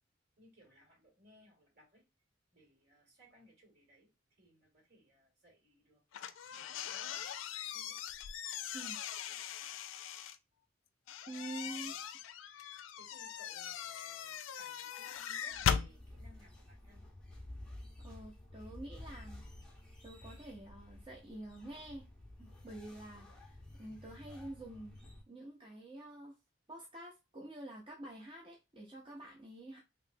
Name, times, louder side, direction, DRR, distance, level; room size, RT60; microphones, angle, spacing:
voice 1, 0.4-2.0 2.5-4.1 4.4-6.0 6.7-8.0 11.6-12.0 12.4-12.6 13.0-17.0, equal, 55° right, -1 dB, 2.0 m, -64 dB
sound 1, 6.1-10.4 11.1-15.9, left 8 dB, 90° left, 0.4 m, -39 dB
voice 2, 11.3-11.9 18.0-19.4 20.0-22.1 22.4-24.9 25.3-26.4 26.7-29.8, right 1 dB, 30° right, -2 dB, 0.6 m, -48 dB
sound 2, 15.5-25.2, left 1 dB, 5° left, 0.8 m, -52 dB
3.1 x 3.0 x 2.5 m, 0.26 s
head